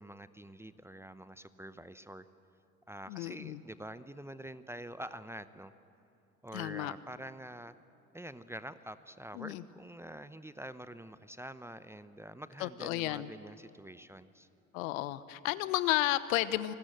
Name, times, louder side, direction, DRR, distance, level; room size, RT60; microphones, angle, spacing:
voice 1, 0.0-2.2 2.9-5.7 6.4-7.7 8.1-14.5, right 1 dB, 5° right, 13 dB, 0.7 m, -46 dB
voice 2, 3.1-3.6 6.5-6.9 9.3-9.6 12.6-13.3 14.7-16.7, left 16 dB, 65° left, 15 dB, 1.1 m, -32 dB
28.0 x 19.5 x 7.7 m, 2.7 s
hypercardioid pair, 75°, 43 cm